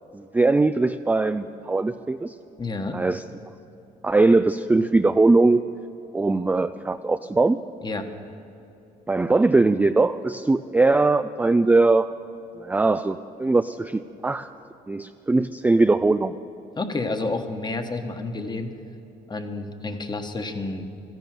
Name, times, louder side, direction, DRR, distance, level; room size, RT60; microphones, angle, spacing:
voice 1, 0.1-2.3 2.9-3.2 4.0-5.6 6.1-7.6 9.1-12.1 12.6-14.5 14.9-16.3, right 3 dB, 10° right, 9 dB, 0.3 m, -20 dB
voice 2, 2.6-3.0 7.8-8.1 16.8-18.7 19.3-20.9, left 3 dB, 25° left, 7 dB, 1.4 m, -30 dB
13.5 x 11.0 x 7.6 m, 2.9 s
supercardioid pair, 75°, 18 cm